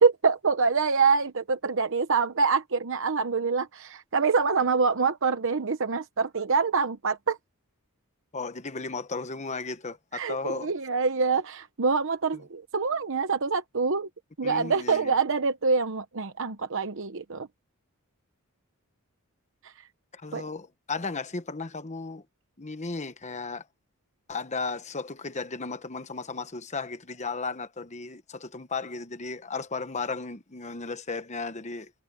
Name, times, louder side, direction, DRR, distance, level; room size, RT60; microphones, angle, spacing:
voice 1, 0.0-7.4 10.1-14.1 14.4-17.5 19.6-19.7 20.3-20.5, right 5 dB, 60° right, 0.9 m, -25 dB
voice 2, 8.3-10.7 12.3-12.4 14.4-15.1 20.1-22.2 22.6-23.6 24.3-31.9, left 4 dB, 30° left, 1.1 m, -35 dB
head